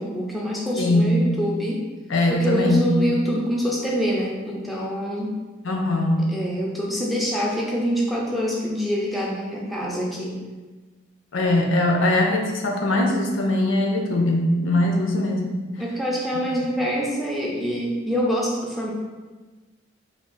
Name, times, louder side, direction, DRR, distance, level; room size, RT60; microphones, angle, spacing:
voice 1, 0.0-1.8 2.3-5.3 6.3-10.4 15.8-18.9, equal, ahead, -4 dB, 0.4 m, -25 dB
voice 2, 0.8-1.2 2.1-3.0 5.6-6.3 11.3-15.6, left 1 dB, 70° left, 2 dB, 0.6 m, -21 dB
3.5 x 2.3 x 3.8 m, 1.3 s
head